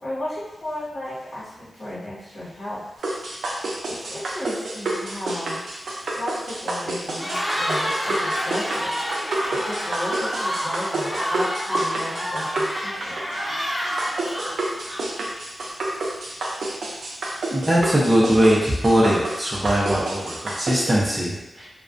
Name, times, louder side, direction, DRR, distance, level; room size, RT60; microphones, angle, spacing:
voice 1, 0.0-2.8 3.8-5.6 6.1-8.9 9.5-13.2, left 1 dB, 50° left, -12 dB, 1.0 m, -34 dB
sound 1, 3.0-20.9, right 2 dB, 90° right, 0.4 m, -29 dB
Cheering, 7.1-15.3, equal, 20° left, 1.0 m, -28 dB
voice 2, 17.5-21.7, equal, 15° right, -6 dB, 0.5 m, -20 dB
2.3 x 2.1 x 2.4 m, 0.94 s
wide cardioid pair, 95°, 0 cm